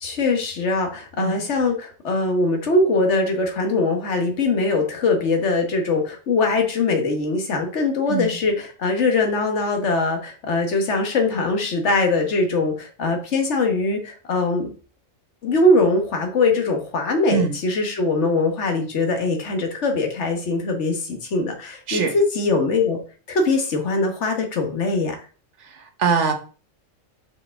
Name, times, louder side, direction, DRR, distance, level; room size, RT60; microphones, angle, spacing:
voice 1, 0.0-14.7 15.4-23.0 23.3-25.1, left 3 dB, 60° left, 4 dB, 1.5 m, -22 dB
voice 2, 25.7-26.3, right 6 dB, 65° right, 5 dB, 1.3 m, -22 dB
5.3 x 4.9 x 3.6 m, 0.38 s
omnidirectional pair, 1.3 m